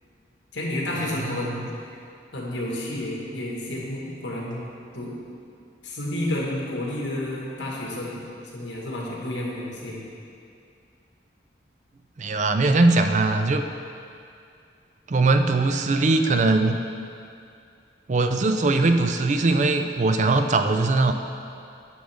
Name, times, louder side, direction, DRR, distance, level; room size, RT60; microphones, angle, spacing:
voice 1, 0.5-1.7 2.3-4.6 4.9-5.2 5.8-8.2 8.5-10.0, left 1 dB, 90° left, -3 dB, 1.7 m, -30 dB
voice 2, 12.2-13.6 15.1-16.8 18.1-21.1, right 3 dB, 40° right, 7 dB, 0.4 m, -20 dB
10.0 x 6.3 x 3.5 m, 2.5 s
head